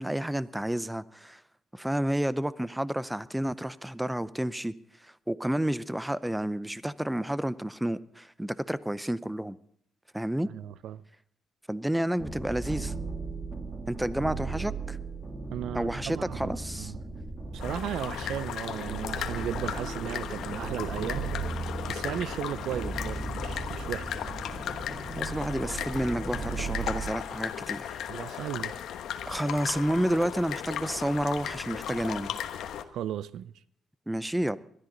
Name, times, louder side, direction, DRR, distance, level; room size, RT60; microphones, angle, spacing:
voice 1, 0.0-1.4 1.7-4.7 5.0-9.6 10.1-10.5 11.7-12.9 13.9-15.0 15.7-16.9 25.2-28.0 29.3-32.3 34.1-34.6, right 1 dB, 5° right, 0.6 m, -30 dB
voice 2, 10.5-11.0 15.5-17.0 17.5-21.3 21.9-24.2 28.1-28.7 32.9-33.5, right 11 dB, 80° right, 0.5 m, -36 dB
sound 1, 12.2-27.1, right 3 dB, 20° right, 2.6 m, -37 dB
sound 2, 17.6-32.8, left 9 dB, 75° left, 1.2 m, -36 dB
21.0 x 13.0 x 3.9 m
cardioid pair, 90°, 0 cm